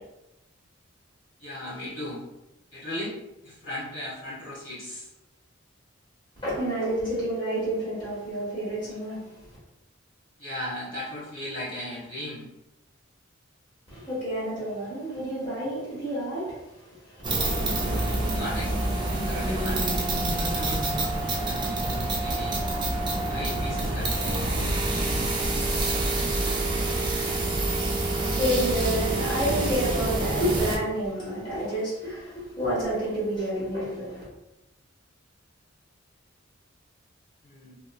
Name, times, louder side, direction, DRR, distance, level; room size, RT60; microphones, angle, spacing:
voice 1, 1.4-2.2 2.7-3.1 3.4-5.1 10.4-12.5 17.8-19.8 20.3-22.6 23.3-24.7 37.4-37.7, left 1 dB, 60° left, -8 dB, 1.3 m, -37 dB
voice 2, 6.4-9.2 13.9-16.6 17.1-17.2 28.1-34.2, right 1 dB, 20° left, -10 dB, 1.2 m, -29 dB
sound 1, 17.2-30.8, right 2 dB, 20° right, 0.4 m, -27 dB
2.9 x 2.4 x 2.2 m, 0.92 s
head